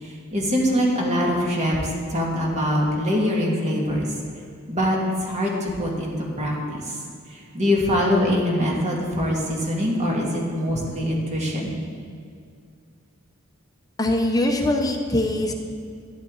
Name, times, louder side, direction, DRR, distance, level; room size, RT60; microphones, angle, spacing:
voice 1, 0.0-4.0 4.7-7.0 7.3-11.7, equal, 35° right, -2 dB, 2.2 m, -23 dB
voice 2, 14.0-15.5, left 1 dB, 20° left, 3 dB, 0.8 m, -22 dB
12.5 x 11.0 x 3.9 m, 2.3 s
head